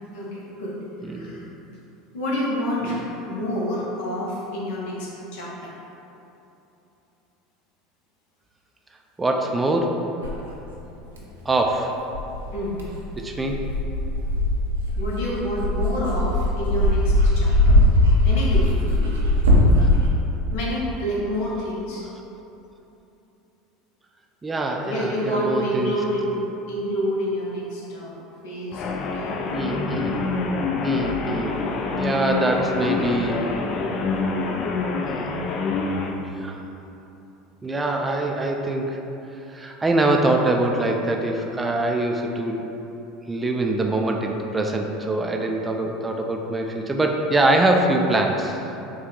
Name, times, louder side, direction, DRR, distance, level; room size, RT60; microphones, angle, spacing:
voice 1, 0.1-0.8 1.0-1.4 2.1-5.7 12.5-12.8 15.0-17.8 18.2-19.2 20.5-22.1 24.8-28.2 28.4-29.3 32.6-33.5 33.8-34.1, equal, 70° left, -5 dB, 1.0 m, -28 dB
voice 2, 1.0-1.4 2.8-3.1 9.2-9.9 11.5-11.9 13.2-13.6 19.8-19.9 24.4-25.9 29.5-30.2 30.8-31.6 31.9-33.4 35.0-35.4 36.4-36.6 37.6-39.0 39.5-42.6 43.3-48.6, right 2 dB, 15° right, 2 dB, 0.4 m, -24 dB
Dog, 10.2-10.4 11.1-11.2 12.1-20.1, left 1 dB, 90° right, 0.6 m, -20 dB
sound 1, 28.7-36.1, left 4 dB, 50° left, 0.4 m, -26 dB
4.2 x 2.4 x 3.8 m, 3.0 s
hypercardioid pair, 80°, 0 cm